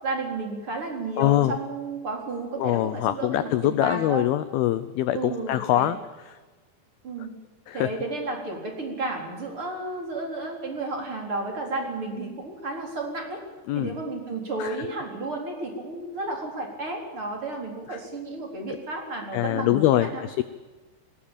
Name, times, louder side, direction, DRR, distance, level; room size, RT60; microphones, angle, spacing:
voice 1, 0.0-4.3 5.1-5.9 7.0-7.3 7.7-13.4 13.7-20.2, right 2 dB, 30° right, 2 dB, 4.4 m, -32 dB
voice 2, 1.2-1.5 2.6-6.0 7.7-7.9 13.7-13.9 14.6-14.7 17.9-18.0 19.3-20.4, left 14 dB, 80° left, 14 dB, 2.2 m, -23 dB
20.0 x 19.5 x 8.8 m, 1.3 s
omnidirectional pair, 5.3 m